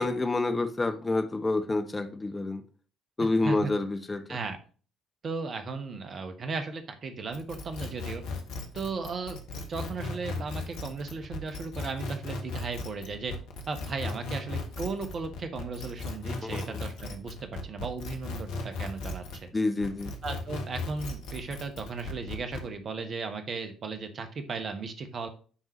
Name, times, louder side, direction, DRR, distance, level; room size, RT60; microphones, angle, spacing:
voice 1, 0.0-2.6 3.2-4.4 16.4-16.8 19.5-20.1, left 2 dB, 20° left, 0.8 m, -28 dB
voice 2, 3.2-3.7 4.3-4.6 5.2-8.2 8.7-13.3 13.7-19.5 20.2-25.3, right 4 dB, 45° right, 1.1 m, -36 dB
sound 1, 7.3-19.5 19.8-22.7, left 3 dB, 60° left, 1.1 m, -37 dB
9.8 x 3.8 x 3.0 m
figure-of-eight pair, 50°, 0 cm